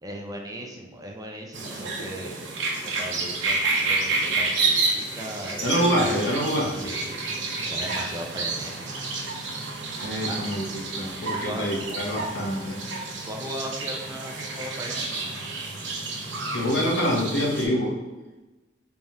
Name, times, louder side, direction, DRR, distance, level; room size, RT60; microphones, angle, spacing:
voice 1, 0.0-6.3 6.8-7.2 7.7-8.7 10.3-10.4 11.4-11.7 13.3-15.1, equal, 20° right, 1 dB, 0.4 m, -37 dB
sound 1, 1.5-17.7, right 3 dB, 75° right, 0.7 m, -30 dB
voice 2, 5.6-6.9 10.0-12.8 16.5-17.9, equal, 75° left, -2 dB, 1.0 m, -26 dB
3.4 x 2.4 x 4.1 m, 1.1 s
head